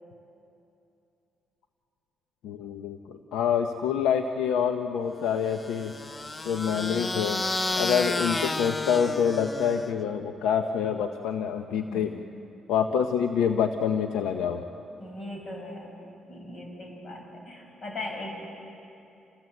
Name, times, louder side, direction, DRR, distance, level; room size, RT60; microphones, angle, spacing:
voice 1, 2.4-5.9 6.5-7.4 7.8-12.1 12.7-14.6, left 7 dB, 90° left, 6 dB, 0.9 m, -26 dB
sound 1, 5.5-10.0, left 2 dB, 25° left, 0.9 m, -31 dB
voice 2, 11.7-12.1 15.0-16.0 16.3-18.3, left 2 dB, 50° left, 0 dB, 6.7 m, -39 dB
28.0 x 16.0 x 7.9 m, 2.8 s
cardioid pair, 90°, 0 cm